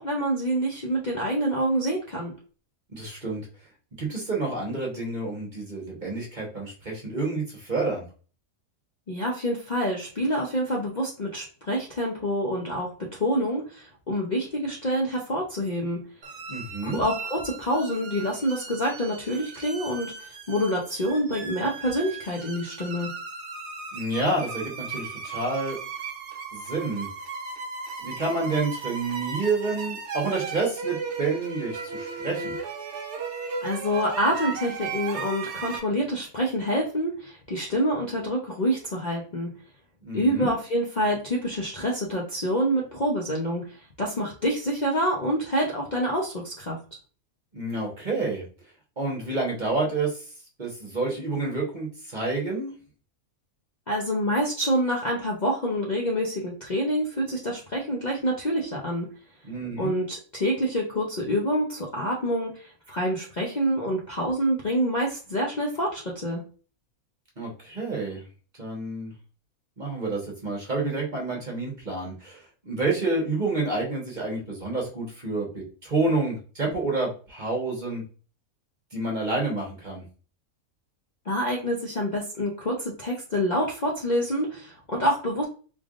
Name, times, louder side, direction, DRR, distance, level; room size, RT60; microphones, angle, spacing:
voice 1, 0.0-2.3 9.1-16.0 16.8-23.1 33.6-39.5 40.1-46.8 53.9-59.1 59.8-66.4 81.3-85.4, equal, 40° left, -2 dB, 0.7 m, -27 dB
voice 2, 2.9-3.4 4.0-8.1 16.5-17.0 23.9-25.8 26.5-27.1 28.0-32.6 40.0-40.5 47.5-48.4 49.0-50.2 50.6-52.7 59.4-59.9 67.4-68.2 68.6-69.1 69.8-78.0 78.9-80.0, right 3 dB, 35° right, -2 dB, 1.2 m, -29 dB
sound 1, 16.2-35.8, right 5 dB, 60° right, 0.9 m, -36 dB
3.7 x 3.4 x 2.5 m, 0.37 s
omnidirectional pair, 1.6 m